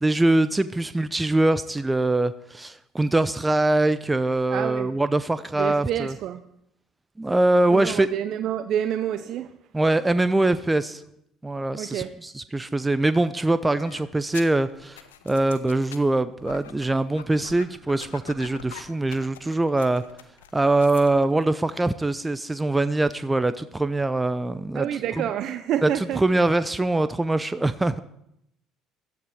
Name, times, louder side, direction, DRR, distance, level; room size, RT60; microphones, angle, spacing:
voice 1, 0.0-6.1 7.2-8.1 9.7-11.0 11.4-20.0 20.5-24.9 25.2-25.3 25.8-25.9 26.2-28.0, right 2 dB, 15° right, 13 dB, 0.7 m, -23 dB
voice 2, 4.5-4.9 5.6-6.4 7.7-9.5 11.8-12.1 24.7-26.2, right 10 dB, 55° right, 11 dB, 0.7 m, -28 dB
sound 1, 13.8-21.1, left 10 dB, 80° left, 1.0 m, -45 dB
16.5 x 13.0 x 4.8 m, 0.77 s
hypercardioid pair, 60°, 0 cm